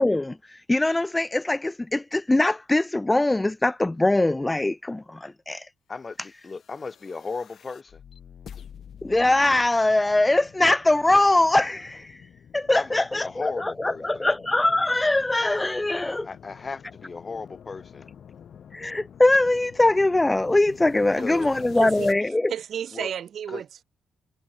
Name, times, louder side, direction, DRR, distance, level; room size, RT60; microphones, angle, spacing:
voice 1, 0.0-5.7 6.2-6.3 9.0-12.3 12.5-16.3 18.7-22.5, left 2 dB, 15° left, 0.3 m, -22 dB
voice 2, 5.9-8.0 12.7-14.3 16.2-18.1 21.2-21.6 22.9-23.1 23.5-23.6, left 4 dB, 30° left, 5.1 m, -36 dB
sound 1, 6.4-22.1, left 8 dB, 60° left, 3.2 m, -47 dB
voice 3, 21.8-22.1 22.5-23.8, right 9 dB, 60° right, 1.4 m, -32 dB
cardioid pair, 90°, 0 cm